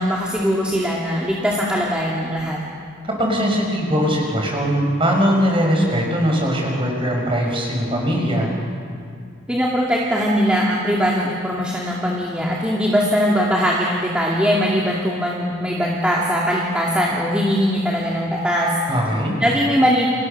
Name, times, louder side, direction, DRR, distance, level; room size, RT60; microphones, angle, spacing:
voice 1, 0.0-2.6 9.5-18.7 19.4-20.1, equal, 5° right, -5 dB, 2.5 m, -20 dB
voice 2, 3.0-8.5 18.9-19.4, equal, 25° right, 1 dB, 5.7 m, -20 dB
29.5 x 29.0 x 6.7 m, 2.2 s
head